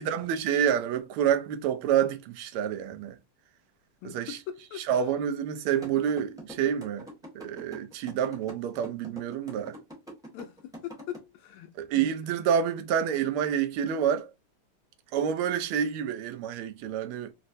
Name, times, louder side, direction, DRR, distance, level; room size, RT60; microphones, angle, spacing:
voice 1, 0.0-3.2 4.0-4.4 4.9-7.1 7.3-9.7 11.8-14.3 15.1-17.3, right 8 dB, 85° right, 1.5 m, -28 dB
voice 2, 4.0-5.0 10.3-11.7, left 11 dB, 85° left, 1.5 m, -41 dB
sound 1, 5.8-11.2, right 1 dB, 5° right, 0.8 m, -44 dB
4.2 x 2.0 x 2.5 m
omnidirectional pair, 2.4 m